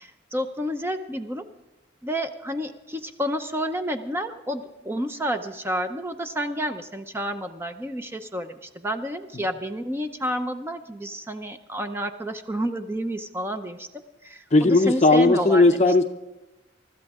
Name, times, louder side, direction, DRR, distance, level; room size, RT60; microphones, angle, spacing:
voice 1, 0.0-1.4 2.0-13.9 14.2-15.9, equal, 10° right, 7 dB, 0.6 m, -30 dB
voice 2, 14.5-16.0, left 2 dB, 35° left, 6 dB, 0.6 m, -17 dB
24.0 x 13.0 x 3.6 m, 1.0 s
head